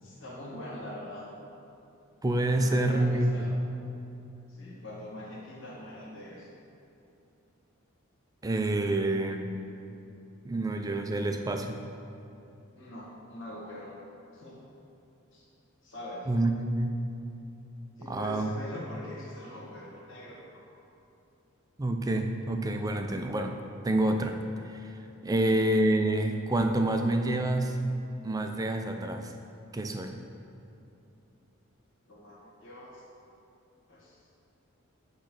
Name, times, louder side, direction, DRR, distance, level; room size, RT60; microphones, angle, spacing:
voice 1, 0.0-1.2 2.5-3.5 4.5-6.5 12.7-13.9 14.3-14.6 15.3-15.4 15.8-16.3 18.0-20.6 25.3-25.4 32.1-33.0 33.9-34.2, left 1 dB, 60° left, -5 dB, 1.5 m, -43 dB
voice 2, 2.2-3.3 8.4-9.5 10.4-11.8 16.3-17.0 18.1-18.5 21.8-23.6 23.8-24.4 24.6-27.8 28.2-29.3 29.7-30.2, right 1 dB, 15° right, 5 dB, 0.4 m, -28 dB
8.5 x 3.2 x 5.9 m, 2.8 s
head